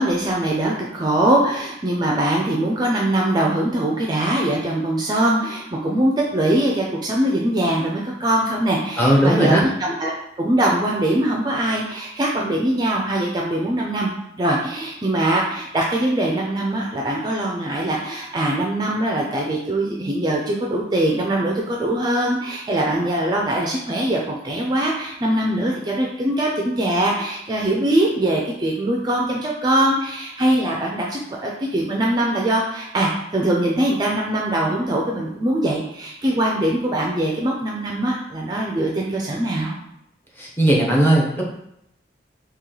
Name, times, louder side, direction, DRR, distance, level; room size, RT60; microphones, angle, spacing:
voice 1, 0.0-10.1 10.4-14.1 14.4-39.8, right 1 dB, 20° right, -2 dB, 0.4 m, -22 dB
voice 2, 9.0-9.6 40.4-41.4, right 1 dB, 10° left, -3 dB, 0.7 m, -17 dB
3.0 x 2.9 x 3.8 m, 0.79 s
head